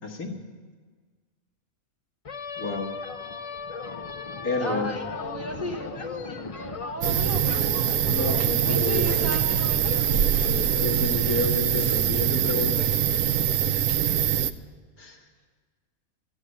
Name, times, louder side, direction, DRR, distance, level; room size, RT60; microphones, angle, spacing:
voice 1, 0.0-0.4 2.6-2.9 4.4-4.9 8.0-9.5 10.7-12.9 15.0-15.2, left 2 dB, 85° left, 1 dB, 2.2 m, -30 dB
sound 1, 2.2-11.1, left 4 dB, 55° left, 0.3 m, -37 dB
voice 2, 4.6-7.7 8.3-10.7, equal, 10° right, 1 dB, 1.1 m, -35 dB
sound 2, 7.0-14.5, right 9 dB, 85° right, 1.1 m, -23 dB
13.5 x 8.9 x 8.9 m, 1.5 s
omnidirectional pair, 1.5 m